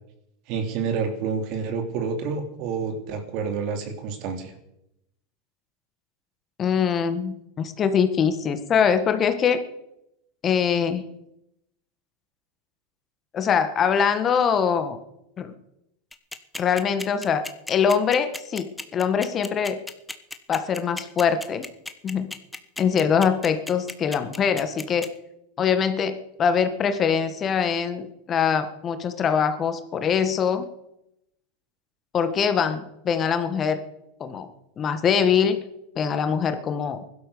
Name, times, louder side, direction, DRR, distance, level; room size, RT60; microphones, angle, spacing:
voice 1, 0.5-4.5, right 5 dB, 55° right, 6 dB, 3.1 m, -28 dB
voice 2, 6.6-9.6 10.4-11.0 13.3-15.0 15.4-15.5 16.5-17.4 17.7-19.8 20.5-21.7 22.0-22.3 22.8-25.1 25.6-30.7 32.1-33.8 34.2-34.5 34.8-35.6 36.0-37.0, left 7 dB, 35° left, 9 dB, 1.8 m, -23 dB
sound 1, 16.1-25.1, left 2 dB, 10° left, 1.2 m, -34 dB
16.0 x 12.0 x 6.9 m, 0.82 s
hypercardioid pair, 100°, 0 cm